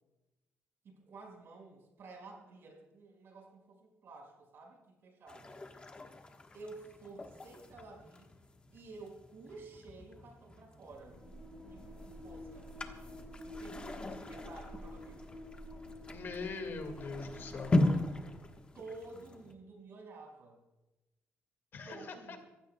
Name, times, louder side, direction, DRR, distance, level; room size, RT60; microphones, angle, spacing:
voice 1, 0.8-5.6 6.5-8.3 8.7-11.2 11.7-12.7 13.4-15.4 17.5-18.4 18.7-20.6 21.8-22.4, right 3 dB, 55° right, 0 dB, 5.1 m, -52 dB
sound 1, 5.3-19.5, left 2 dB, 20° left, 1.2 m, -39 dB
sound 2, 10.9-18.7, equal, 5° left, 5.7 m, -49 dB
voice 2, 16.1-17.7 21.7-22.4, left 4 dB, 50° left, 5 dB, 1.9 m, -42 dB
27.0 x 15.5 x 2.3 m, 1.0 s
cardioid pair, 155°, 5 cm